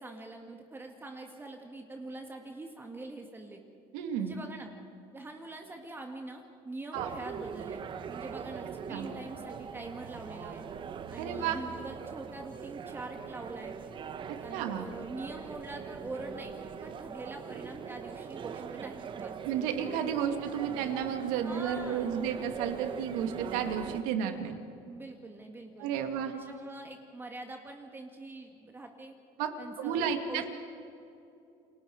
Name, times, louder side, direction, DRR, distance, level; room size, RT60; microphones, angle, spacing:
voice 1, 0.0-3.6 4.2-4.7 5.1-7.8 8.1-10.7 11.1-13.8 14.4-19.3 21.4-22.1 24.8-26.0 26.3-29.2 29.6-30.5, right 2 dB, 15° right, 3 dB, 1.8 m, -44 dB
voice 2, 3.9-4.4 6.9-7.1 8.9-9.1 11.2-11.6 14.5-14.9 19.4-24.6 25.8-26.3 29.4-29.5 29.8-30.4, right 8 dB, 75° right, 6 dB, 2.5 m, -32 dB
sound 1, 6.9-24.0, right 7 dB, 35° right, 1.2 m, -41 dB
29.5 x 22.0 x 4.7 m, 2.8 s
supercardioid pair, 120°, 14 cm